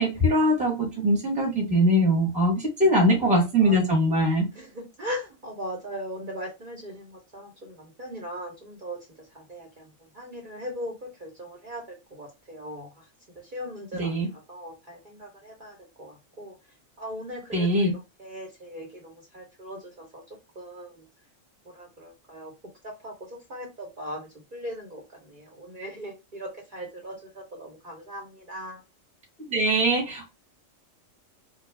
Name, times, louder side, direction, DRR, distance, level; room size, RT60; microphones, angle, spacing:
voice 1, 0.0-4.5 14.0-14.3 17.5-17.9 29.5-30.3, equal, 5° right, -1 dB, 0.9 m, -22 dB
voice 2, 3.4-3.8 4.5-13.1 13.3-16.5 17.0-17.9 18.2-20.2 20.5-21.1 21.7-22.5 22.8-28.8, equal, 45° right, -2 dB, 0.9 m, -39 dB
2.3 x 2.0 x 3.2 m, 0.24 s
omnidirectional pair, 1.3 m